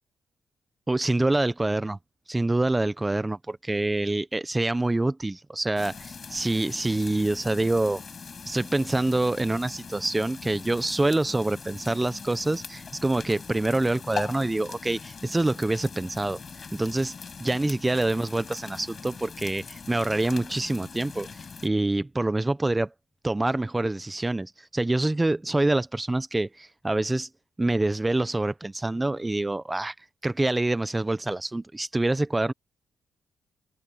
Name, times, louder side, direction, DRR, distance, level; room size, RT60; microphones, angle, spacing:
voice 1, 0.9-2.0 2.3-8.0 8.5-16.4 16.7-17.1 17.4-22.9 23.2-27.3 27.6-29.9 30.2-32.5, right 2 dB, 15° right, 1.0 m, -26 dB
sound 1, 5.8-21.7, left 5 dB, 45° left, 7.3 m, -41 dB
cardioid pair, 70°, 0 cm